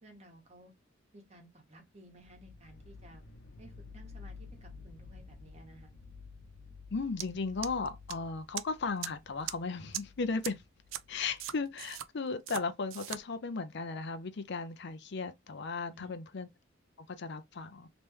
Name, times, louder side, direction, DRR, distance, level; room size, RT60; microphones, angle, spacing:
voice 1, 0.0-0.7 1.1-3.2 3.6-5.9 15.9-16.1, right 1 dB, 35° right, 1.3 m, -56 dB
sound 1, 2.2-12.0, left 4 dB, 85° left, 0.9 m, -52 dB
voice 2, 6.9-10.6 11.1-16.5 17.0-17.9, left 4 dB, 60° left, 0.6 m, -36 dB
sound 2, 7.2-7.3 7.6-8.1 8.6-8.7 9.0-9.1 9.5-9.6 9.9-10.0 10.4-10.5 10.9-11.0 11.4-12.1 12.5-12.6 12.9-13.2, right 12 dB, 75° right, 0.4 m, -38 dB
3.3 x 3.0 x 3.1 m
head